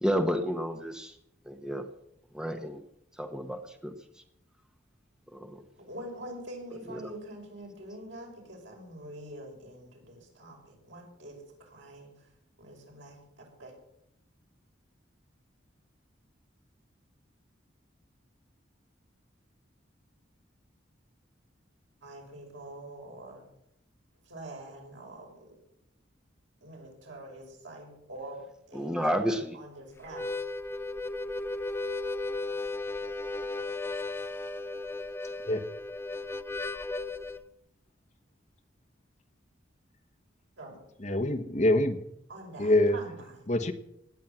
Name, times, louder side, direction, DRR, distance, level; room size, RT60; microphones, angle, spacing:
voice 1, 0.0-1.2 1.4-1.8 2.3-2.8 3.2-4.2 5.3-5.6 6.9-7.1 28.7-29.6, equal, 5° right, 6 dB, 1.0 m, -31 dB
voice 2, 5.8-12.1 12.6-13.7 22.0-23.4 24.2-25.6 26.6-28.4 28.7-30.3 40.6-40.8 42.3-43.4, right 1 dB, 80° right, 0 dB, 5.9 m, -45 dB
Harmonica, 30.0-37.4, left 2 dB, 10° left, 0.6 m, -35 dB
voice 3, 41.0-42.0 42.6-43.0 43.5-43.7, left 1 dB, 40° left, 8 dB, 1.2 m, -25 dB
18.5 x 9.4 x 7.3 m, 0.77 s
head